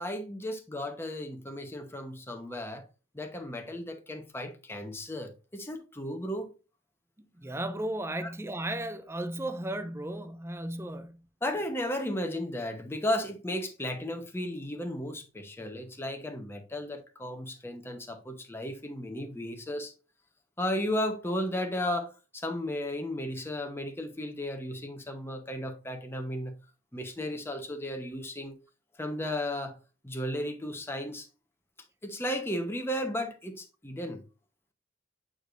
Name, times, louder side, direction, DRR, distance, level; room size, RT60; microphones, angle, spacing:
voice 1, 0.0-2.8 3.1-6.5 8.2-8.3 11.4-19.9 20.6-26.5 26.9-28.6 29.0-29.8 30.0-31.3 32.0-34.2, left 1 dB, 10° left, 0.9 m, -34 dB
voice 2, 7.4-11.2, right 1 dB, 15° right, 0.6 m, -35 dB
8.6 x 4.9 x 2.5 m
head